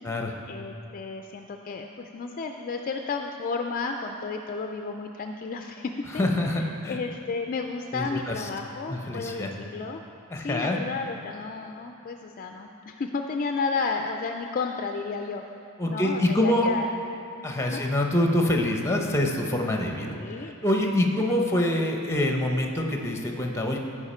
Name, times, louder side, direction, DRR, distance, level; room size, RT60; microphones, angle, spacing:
voice 1, 0.5-6.3 6.9-10.0 10.4-15.4 15.9-16.9 17.6-17.8 20.0-20.5, left 4 dB, 40° left, 4 dB, 0.3 m, -32 dB
voice 2, 6.1-7.0 7.9-8.5 8.9-9.5 10.3-10.8 15.8-16.7 17.4-20.1 20.4-23.8, left 1 dB, 10° left, 2 dB, 0.8 m, -25 dB
14.5 x 5.0 x 4.3 m, 2.9 s
head